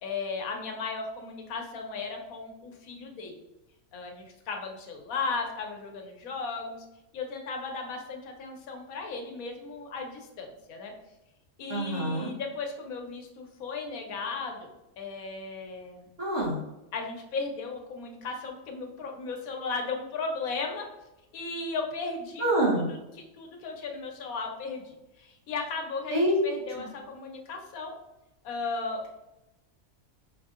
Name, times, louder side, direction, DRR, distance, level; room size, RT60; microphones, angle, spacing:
voice 1, 0.0-3.4 3.9-6.8 7.1-10.9 11.6-14.7 15.0-16.0 16.9-20.9 21.3-22.8 23.4-27.9 28.4-29.1, left 4 dB, 85° left, 2 dB, 1.2 m, -36 dB
voice 2, 11.7-12.3 16.2-16.6 22.4-22.9 26.1-26.4 26.8-26.9, right 1 dB, 60° right, -4 dB, 1.5 m, -26 dB
5.3 x 2.6 x 2.4 m, 0.94 s
omnidirectional pair, 1.4 m